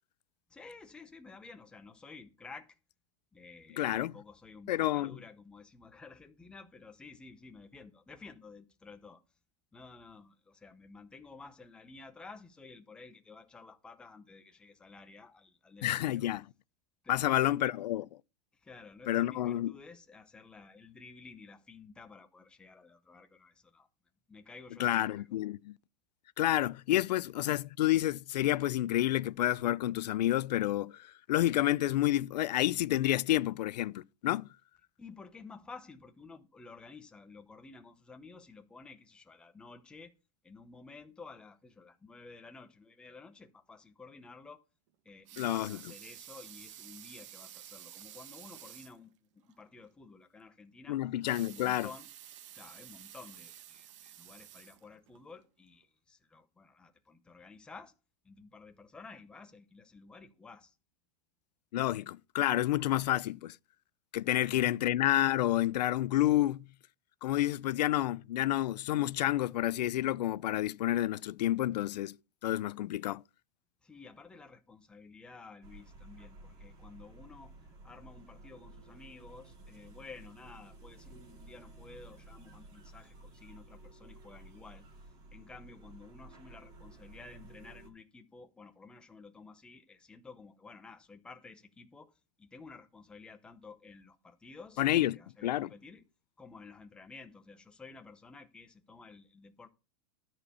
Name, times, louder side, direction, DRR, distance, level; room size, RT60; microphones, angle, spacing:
voice 1, 0.5-2.8 3.3-9.2 9.7-16.2 17.0-17.8 18.5-23.9 24.3-25.3 35.0-40.1 40.4-44.6 45.0-51.0 51.4-52.1 52.5-57.9 58.2-60.8 64.3-65.0 73.8-77.6 77.8-96.1 96.4-99.7, left 4 dB, 5° left, 0.7 m, -52 dB
voice 2, 3.8-4.1 4.7-5.2 15.8-16.4 17.1-18.0 19.1-19.7 24.8-25.8 26.4-34.5 45.4-45.8 50.9-51.9 61.7-63.6 64.1-66.6 67.2-72.1 72.4-73.2 94.8-95.7, left 14 dB, 85° left, 0.5 m, -29 dB
Water tap faucet / Sink (filling or washing) / Liquid, 45.1-49.0 49.5-49.6 49.9-50.0 51.1-55.2 55.8-55.9, right 12 dB, 50° right, 1.1 m, -51 dB
sound 1, 75.6-87.9, right 2 dB, 20° right, 2.2 m, -54 dB
12.5 x 4.4 x 6.8 m
supercardioid pair, 175°, 21 cm